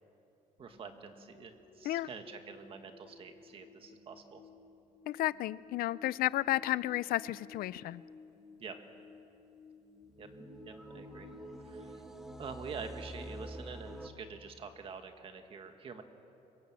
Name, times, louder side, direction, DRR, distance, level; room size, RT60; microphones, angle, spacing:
sound 1, 0.6-12.7, left 3 dB, 40° left, 2.7 m, -57 dB
voice 1, 0.6-4.4 8.6-8.8 10.2-10.3 10.6-11.3 11.6-12.0 12.4-16.0, right 5 dB, 35° right, 6 dB, 1.8 m, -46 dB
voice 2, 5.1-8.0, left 15 dB, 75° left, 19 dB, 0.5 m, -32 dB
sound 2, 10.0-14.1, right 1 dB, 5° right, 1.6 m, -46 dB
25.5 x 23.5 x 7.5 m, 2.9 s
cardioid pair, 165°, 15 cm